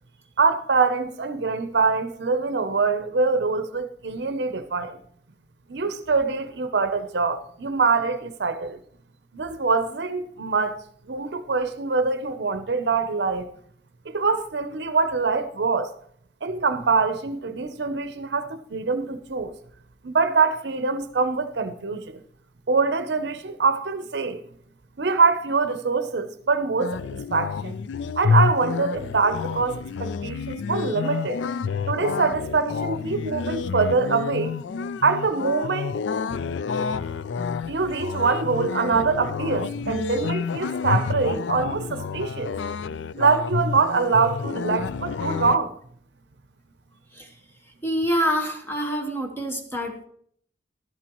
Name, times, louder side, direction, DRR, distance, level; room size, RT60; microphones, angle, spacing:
voice 1, 0.4-5.0 5.7-8.8 9.3-13.5 14.1-15.9 16.4-19.6 20.0-22.2 22.7-24.4 25.0-27.7 28.2-31.4 31.9-34.6 35.0-35.9 37.7-42.5 43.2-45.8, right 4 dB, 65° right, 0.7 m, -24 dB
sound 1, 26.8-45.6, left 5 dB, 80° left, 0.4 m, -29 dB
voice 2, 47.8-50.1, equal, 10° left, 1.2 m, -26 dB
12.5 x 11.5 x 3.0 m
head